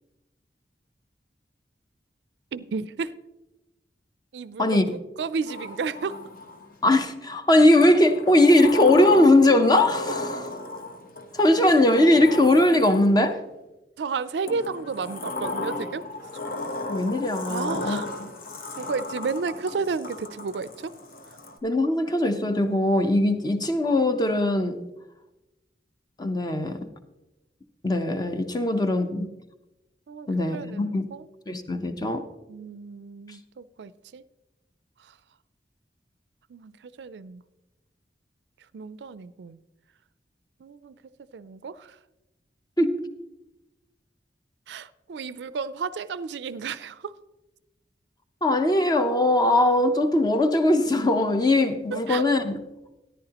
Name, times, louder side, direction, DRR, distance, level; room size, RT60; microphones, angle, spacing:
voice 1, 2.5-3.1 4.3-6.2 14.0-16.0 17.5-18.1 18.7-20.9 28.5-28.9 30.1-31.3 32.5-34.2 35.0-35.2 36.5-37.4 38.7-39.6 40.6-41.0 41.3-42.0 44.7-47.1 51.9-52.2, right 5 dB, 70° right, 0.4 m, -32 dB
Sliding door, 5.5-6.8 7.8-13.4 14.5-21.6, left 2 dB, 55° left, 1.0 m, -35 dB
voice 2, 6.8-10.2 11.4-13.4 16.9-18.3 21.6-24.8 26.2-26.9 27.8-29.3 30.3-31.1 31.5-32.2 42.8-43.0 48.4-52.5, left 1 dB, 25° left, 0.7 m, -20 dB
13.5 x 10.5 x 2.9 m
head